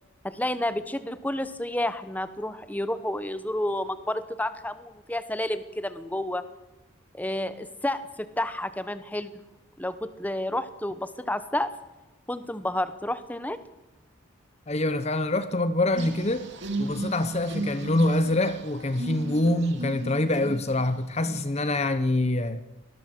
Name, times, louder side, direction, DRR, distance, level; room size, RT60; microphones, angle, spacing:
voice 1, 0.2-6.4 7.1-9.3 9.8-11.7 12.3-13.6, left 1 dB, 5° left, 1.0 m, -30 dB
voice 2, 14.7-16.5 16.8-22.6, left 1 dB, 30° left, 0.8 m, -25 dB
sound 1, 15.9-20.8 21.2-21.6, right 2 dB, 55° right, 2.9 m, -35 dB
24.0 x 20.0 x 7.7 m
head